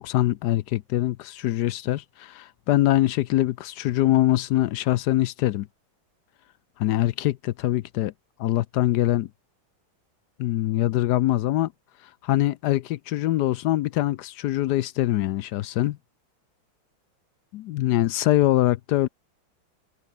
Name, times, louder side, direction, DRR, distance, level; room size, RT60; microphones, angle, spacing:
voice 1, 0.0-5.7 6.8-8.1 8.4-9.3 10.4-11.7 12.2-16.0 17.5-19.1, left 15 dB, 75° left, 1.0 m, -23 dB
omnidirectional pair, 2.2 m